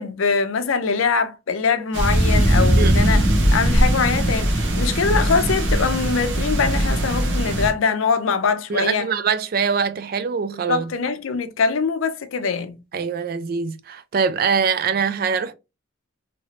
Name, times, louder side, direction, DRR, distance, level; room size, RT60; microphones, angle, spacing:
voice 1, 0.0-9.1 10.7-12.8, left 5 dB, 80° left, 0.5 m, -23 dB
sound 1, 1.9-7.7, right 1 dB, 65° right, 0.9 m, -19 dB
voice 2, 8.7-10.8 12.9-15.5, right 6 dB, 45° right, 0.3 m, -23 dB
3.0 x 2.9 x 2.8 m
head